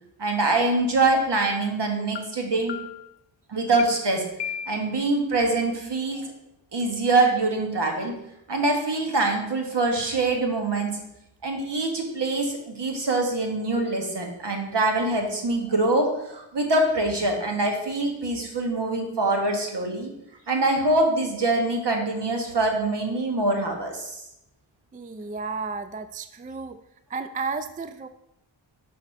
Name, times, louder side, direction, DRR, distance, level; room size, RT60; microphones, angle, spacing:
voice 1, 0.2-2.8 3.5-4.2 4.7-6.3 6.7-8.1 8.5-11.1 11.4-20.1 20.5-24.1, right 2 dB, 60° right, 3 dB, 1.6 m, -24 dB
sound 1, 0.6-0.7 1.1-1.5 2.2-2.3 2.7-3.2 3.8-3.9 4.4-5.0, left 8 dB, 65° left, 0.6 m, -35 dB
voice 2, 24.9-26.8 27.1-28.1, right 4 dB, 20° right, 11 dB, 0.3 m, -33 dB
6.0 x 4.3 x 5.3 m, 0.81 s
cardioid pair, 50°, 46 cm